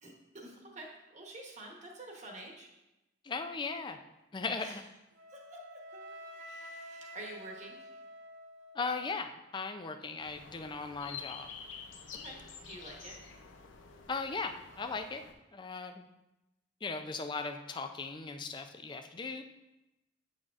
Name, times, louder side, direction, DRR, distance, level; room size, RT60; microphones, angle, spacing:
voice 1, 0.0-2.7 4.6-4.8 5.3-5.6 5.9-7.9 12.1-13.2, right 2 dB, 40° right, -1 dB, 1.1 m, -49 dB
voice 2, 3.2-4.0 4.3-4.8 8.7-11.5 14.1-15.2 15.5-16.1 16.8-19.4, left 4 dB, 25° left, 7 dB, 0.4 m, -38 dB
Wind instrument woodwind instrument, 5.2-9.2, equal, 80° right, 0.6 m, -49 dB
sound 1, 10.2-15.3, left 6 dB, 85° left, 0.6 m, -48 dB
7.8 x 6.1 x 2.4 m, 0.96 s
head